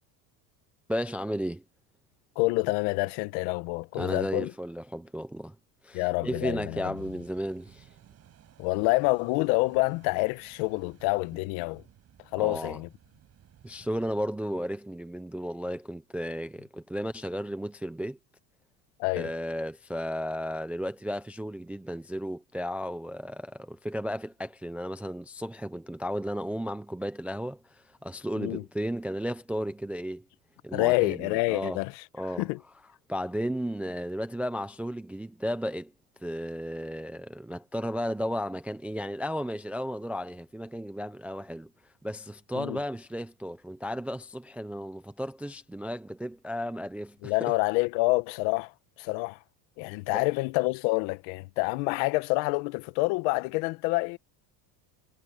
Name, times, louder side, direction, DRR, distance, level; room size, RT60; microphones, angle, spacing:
voice 1, 0.9-1.6 4.0-5.6 5.8-7.9 12.4-12.8 13.6-18.2 19.2-30.2 30.6-31.8 32.1-32.5 33.1-35.9 36.2-41.7 42.0-47.5 50.1-50.2, equal, 5° right, 0.4 m, -34 dB
voice 2, 2.4-4.5 5.9-6.9 8.6-11.8 12.3-12.9 19.0-19.4 28.4-28.6 30.7-32.0 32.4-32.6 42.5-42.8 47.2-48.7 49.0-49.4 49.8-54.2, left 24 dB, 65° left, 1.0 m, -27 dB
sound 1, 6.9-14.3, right 10 dB, 30° right, 6.7 m, -57 dB
cardioid pair, 160°, 46 cm